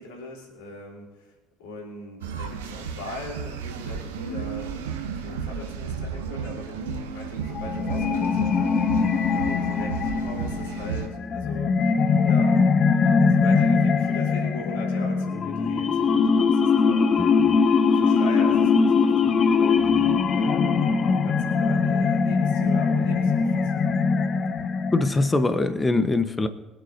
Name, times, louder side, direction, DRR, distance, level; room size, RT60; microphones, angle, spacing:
voice 1, 0.0-24.0, left 1 dB, 75° left, -2 dB, 3.9 m, -40 dB
sound 1, 2.2-11.1, right 6 dB, 80° right, 0.9 m, -33 dB
sound 2, 7.5-25.4, left 5 dB, 45° left, 0.7 m, -21 dB
voice 2, 17.2-17.5 24.9-26.5, left 2 dB, 25° left, 10 dB, 1.2 m, -23 dB
25.0 x 8.8 x 2.8 m, 1.2 s
figure-of-eight pair, 50°, 0 cm